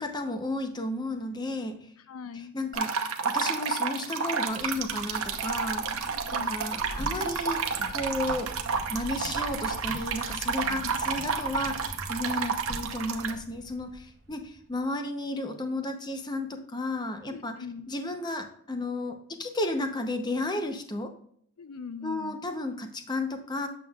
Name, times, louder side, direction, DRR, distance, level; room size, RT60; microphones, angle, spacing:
voice 1, 0.0-1.9 2.5-5.9 6.3-7.6 7.9-8.5 8.9-17.5 17.9-21.1 22.0-23.7, left 2 dB, 20° left, 6 dB, 0.7 m, -33 dB
voice 2, 2.1-2.5 6.1-6.6 10.7-11.0 17.3-17.9 21.6-22.4, left 5 dB, 85° left, 12 dB, 0.5 m, -41 dB
sound 1, 2.7-13.3, right 5 dB, 75° right, 0.8 m, -31 dB
Vehicle, 4.4-14.8, right 1 dB, 50° right, 1.0 m, -43 dB
sound 2, 7.0-7.4 7.8-8.5 8.8-8.9 9.2-9.4 9.9-10.3 10.7-11.4 11.7-11.8, left 1 dB, 50° left, 0.8 m, -46 dB
8.3 x 6.8 x 2.4 m, 0.63 s
head